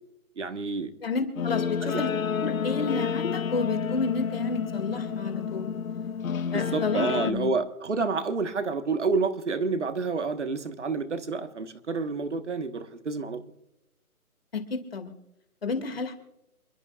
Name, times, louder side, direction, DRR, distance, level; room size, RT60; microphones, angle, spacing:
voice 1, 0.4-0.9 1.8-2.0 6.4-13.4, right 4 dB, 50° right, 9 dB, 1.4 m, -29 dB
voice 2, 1.0-2.1 2.4-5.7 6.5-7.5 14.5-15.1 15.6-16.2, left 4 dB, 40° left, 7 dB, 2.3 m, -30 dB
Guitar, 1.4-7.3, left 7 dB, 65° left, 0.7 m, -30 dB
28.0 x 12.0 x 2.4 m, 0.87 s
hypercardioid pair, 175°, 45 cm